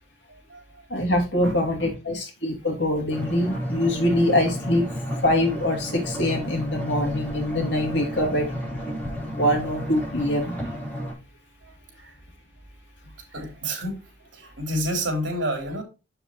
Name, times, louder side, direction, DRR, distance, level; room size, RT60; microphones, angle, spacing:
voice 1, 0.9-4.8 5.2-8.5 9.4-10.5, left 1 dB, 65° left, 2 dB, 2.8 m, -24 dB
voice 2, 1.4-2.2 12.0-12.1 13.3-14.0 14.3-15.8, equal, 70° right, 2 dB, 3.5 m, -29 dB
sound 1, 3.1-11.1, equal, 10° left, 4.7 m, -32 dB
7.9 x 6.9 x 3.0 m, 0.28 s
head